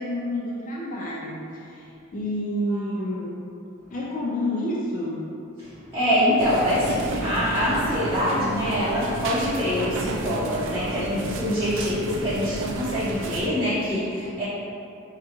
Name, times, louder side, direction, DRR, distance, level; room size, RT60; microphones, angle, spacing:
voice 1, 0.0-3.5 3.9-5.3, left 1 dB, 40° left, -5 dB, 0.4 m, -29 dB
voice 2, 5.6-14.4, equal, 10° right, -16 dB, 0.8 m, -25 dB
sound 1, 6.4-13.5, right 3 dB, 60° right, 0.3 m, -32 dB
4.9 x 2.3 x 2.8 m, 2.7 s
head